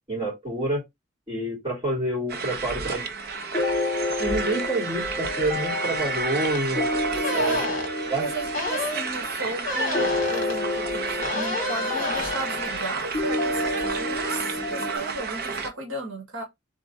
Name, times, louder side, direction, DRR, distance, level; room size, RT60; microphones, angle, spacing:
voice 1, 0.1-0.8 1.3-3.0 4.2-6.9 7.3-7.7 8.1-8.3, right 1 dB, 25° right, 3.1 m, -28 dB
sound 1, 2.3-15.7, right 4 dB, 50° right, 0.7 m, -31 dB
sound 2, 3.5-15.0, left 2 dB, 15° left, 1.4 m, -30 dB
sound 3, 6.5-6.6 7.2-7.9 8.5-9.0 9.6-10.5 11.2-12.4, left 3 dB, 40° left, 1.8 m, -30 dB
voice 2, 7.1-7.6 8.2-16.4, right 2 dB, 75° right, 1.6 m, -34 dB
3.8 x 3.5 x 4.0 m
head